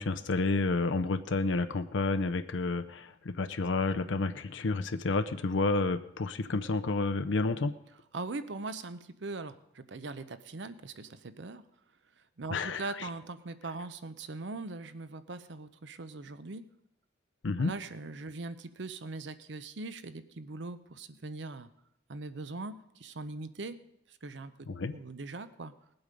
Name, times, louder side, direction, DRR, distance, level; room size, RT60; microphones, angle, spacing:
voice 1, 0.0-7.7 12.5-13.1 17.4-17.7 24.7-25.0, left 3 dB, 85° left, 9 dB, 0.6 m, -30 dB
voice 2, 8.1-11.6 12.4-16.6 17.6-21.7 22.1-23.8 24.1-24.5 24.8-25.7, right 3 dB, 75° right, 12 dB, 0.7 m, -41 dB
19.0 x 8.0 x 5.2 m, 0.78 s
head